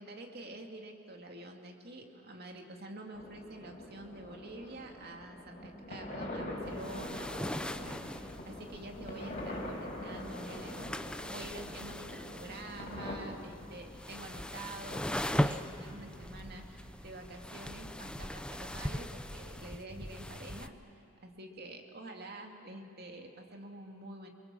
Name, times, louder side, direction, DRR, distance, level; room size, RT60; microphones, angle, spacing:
voice 1, 0.0-20.8 21.2-24.3, right 2 dB, 50° right, 2 dB, 2.4 m, -47 dB
sound 1, 3.1-13.2, left 1 dB, 35° left, 4.6 m, -44 dB
sound 2, 6.6-20.7, left 1 dB, 5° left, 0.6 m, -40 dB
29.5 x 22.5 x 7.6 m, 3.0 s
head